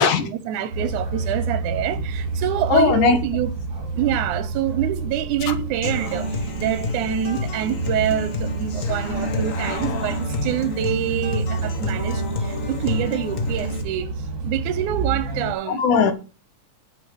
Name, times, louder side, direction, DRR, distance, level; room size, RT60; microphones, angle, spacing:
voice 1, 0.0-3.5 4.0-6.3 6.6-12.2 12.7-14.1 14.4-15.8, right 11 dB, 80° right, 2.2 m, -26 dB
sound 1, 0.7-15.5, right 3 dB, 35° right, 3.5 m, -29 dB
voice 2, 2.7-3.2 5.5-5.6 15.7-16.1, left 5 dB, 75° left, 2.8 m, -18 dB
Human voice / Acoustic guitar, 5.8-13.8, left 2 dB, 50° left, 0.9 m, -29 dB
8.9 x 6.9 x 7.0 m
omnidirectional pair, 3.6 m